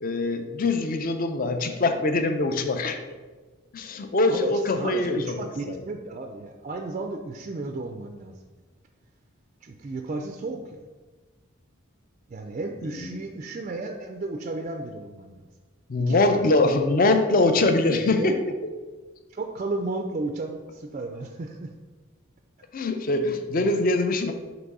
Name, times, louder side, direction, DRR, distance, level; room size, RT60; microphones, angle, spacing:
voice 1, 0.0-3.0 3.7-5.2 5.7-5.8 13.1-13.2 15.9-18.4 22.7-24.3, left 2 dB, 40° left, 7 dB, 0.4 m, -23 dB
voice 2, 4.3-8.3 9.6-10.8 12.3-15.4 16.1-16.5 18.2-18.4 19.3-21.7, right 2 dB, 35° right, 4 dB, 0.3 m, -33 dB
6.0 x 3.0 x 5.3 m, 1.3 s
head